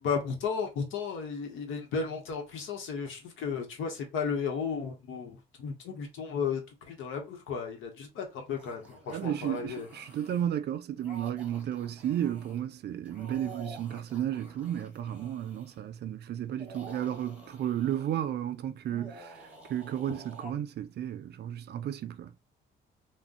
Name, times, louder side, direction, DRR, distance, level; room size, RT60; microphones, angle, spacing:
voice 1, 0.0-9.9, left 6 dB, 85° left, 0.9 m, -34 dB
sound 1, 8.5-10.5 11.0-12.6 13.0-15.8 16.5-18.3 18.9-20.5, right 1 dB, 5° right, 1.0 m, -50 dB
voice 2, 9.1-19.4 19.7-22.3, right 10 dB, 55° right, 0.4 m, -33 dB
2.5 x 2.1 x 3.6 m
cardioid pair, 90°, 20 cm